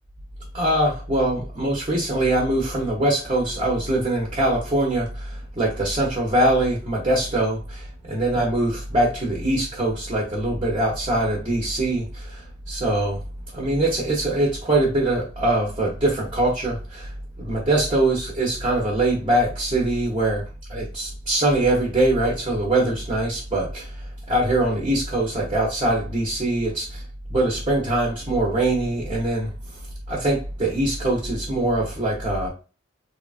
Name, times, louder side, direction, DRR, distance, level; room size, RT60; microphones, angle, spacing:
voice 1, 0.5-13.2 13.5-17.1 17.4-20.4 20.7-23.9 24.3-27.0 27.3-29.5 30.1-32.5, right 1 dB, 30° right, -3 dB, 0.7 m, -23 dB
3.1 x 2.3 x 2.4 m, 0.33 s
head